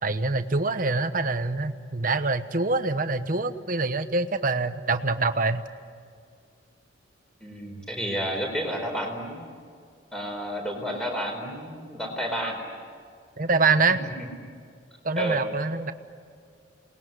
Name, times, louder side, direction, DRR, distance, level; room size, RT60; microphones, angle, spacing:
voice 1, 0.0-5.6 13.4-14.0 15.0-15.9, right 3 dB, 45° right, 9 dB, 1.1 m, -25 dB
voice 2, 7.4-9.4 10.1-12.6 15.2-15.5, equal, 5° left, 1 dB, 4.5 m, -31 dB
28.0 x 20.5 x 9.5 m, 2.1 s
head